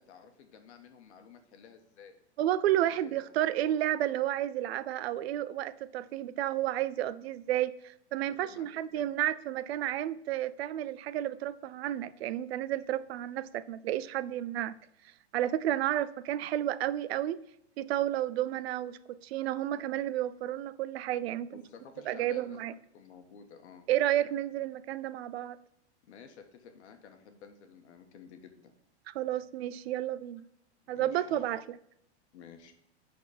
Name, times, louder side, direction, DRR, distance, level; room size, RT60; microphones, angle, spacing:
voice 1, 0.0-2.1 2.8-3.2 8.3-8.7 8.9-9.1 21.5-23.9 26.0-28.7 30.8-31.4 32.3-32.7, left 6 dB, 75° left, 1.5 m, -52 dB
voice 2, 2.4-14.7 15.3-17.4 17.8-21.6 22.1-22.7 23.9-25.6 29.1-30.5 30.9-31.6, right 12 dB, 65° right, 0.5 m, -31 dB
10.5 x 4.3 x 4.2 m
supercardioid pair, 160°, 34 cm